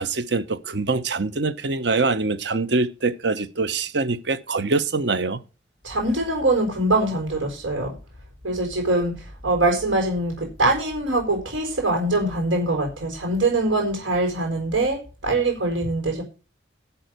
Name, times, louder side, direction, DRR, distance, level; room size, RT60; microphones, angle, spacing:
voice 1, 0.0-5.4, right 3 dB, 65° right, 1.0 m, -24 dB
voice 2, 5.8-7.9 8.4-16.2, right 2 dB, 90° right, 5.1 m, -23 dB
12.0 x 5.7 x 6.6 m
head